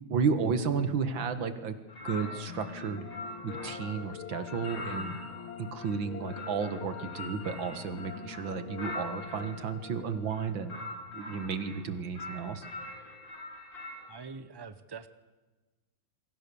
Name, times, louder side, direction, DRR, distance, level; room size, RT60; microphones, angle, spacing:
voice 1, 0.1-1.7 2.0-3.1 3.4-5.2 5.6-10.8 11.1-12.7, right 5 dB, 70° right, 10 dB, 2.3 m, -32 dB
sound 1, 1.9-4.0 4.5-9.6 10.2-11.8 12.1-14.1, left 2 dB, 60° left, 5.3 m, -43 dB
sound 2, 2.3-11.5, left 8 dB, 80° left, 2.0 m, -45 dB
voice 2, 14.0-15.1, right 5 dB, 25° right, 12 dB, 0.5 m, -44 dB
28.0 x 23.5 x 7.0 m, 1.2 s
omnidirectional pair, 2.2 m